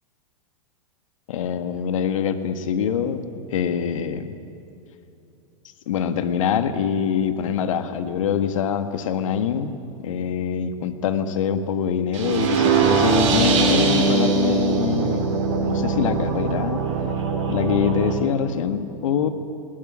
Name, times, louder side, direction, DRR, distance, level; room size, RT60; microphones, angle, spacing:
voice 1, 1.3-3.2 3.5-4.3 5.9-9.8 10.0-15.3 15.6-16.8 17.5-19.3, left 8 dB, 65° left, 9 dB, 1.7 m, -24 dB
sound 1, 12.1-18.1, right 4 dB, 60° right, 4.9 m, -21 dB
19.5 x 19.5 x 10.0 m, 2.7 s
hypercardioid pair, 100°, 18 cm